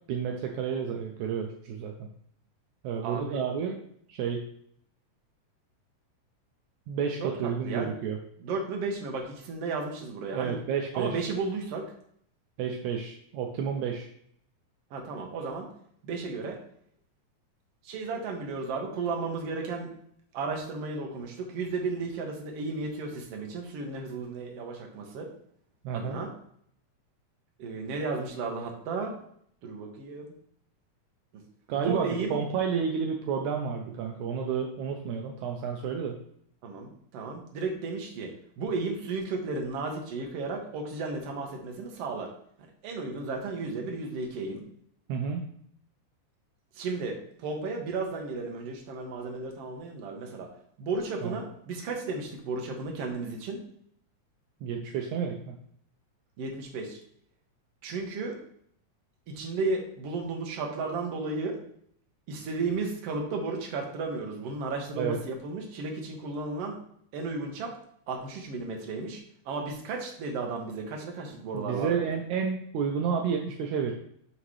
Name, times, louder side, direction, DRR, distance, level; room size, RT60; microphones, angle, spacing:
voice 1, 0.1-2.1 2.8-3.8 4.1-4.4 6.9-8.2 10.3-11.2 12.6-14.1 25.8-26.2 31.7-36.2 45.1-45.5 51.2-51.4 54.6-55.6 64.9-65.2 71.5-73.9, right 7 dB, 80° right, 2 dB, 2.0 m, -30 dB
voice 2, 3.0-3.7 7.2-7.3 7.6-7.9 8.4-10.6 10.9-11.8 14.9-15.7 16.0-16.6 17.8-19.9 20.3-25.3 25.9-26.3 27.6-29.1 29.6-30.3 31.8-32.4 36.6-42.3 42.6-44.6 46.7-50.5 50.8-53.6 56.4-57.0 57.8-58.4 59.3-61.6 62.3-66.8 67.1-67.7 68.1-72.1, right 3 dB, 60° right, 1 dB, 2.1 m, -34 dB
11.0 x 3.8 x 3.2 m, 0.66 s
omnidirectional pair, 3.4 m